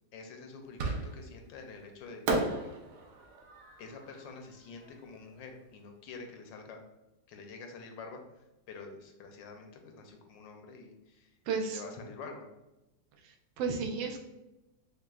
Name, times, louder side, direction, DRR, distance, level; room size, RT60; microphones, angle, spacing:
voice 1, 0.1-2.8 3.8-6.8 7.3-11.4 11.6-12.5, left 4 dB, 80° left, 4 dB, 1.3 m, -47 dB
Fireworks, 0.8-1.5 2.3-5.4, right 2 dB, 70° right, 1.1 m, -35 dB
voice 2, 11.5-11.8 13.2-14.2, right 5 dB, 90° right, 3 dB, 1.3 m, -33 dB
6.4 x 2.2 x 2.4 m, 0.98 s
omnidirectional pair, 2.0 m